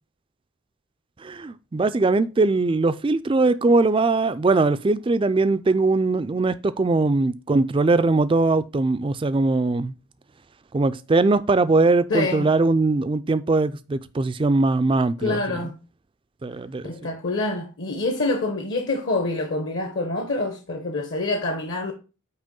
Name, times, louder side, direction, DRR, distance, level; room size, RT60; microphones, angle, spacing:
voice 1, 1.2-9.9 10.7-15.6 16.4-16.9, right 3 dB, 25° right, 0.3 m, -21 dB
voice 2, 12.1-12.5 15.2-15.7 16.8-21.9, left 2 dB, 55° left, 1.0 m, -26 dB
8.9 x 3.0 x 5.2 m
head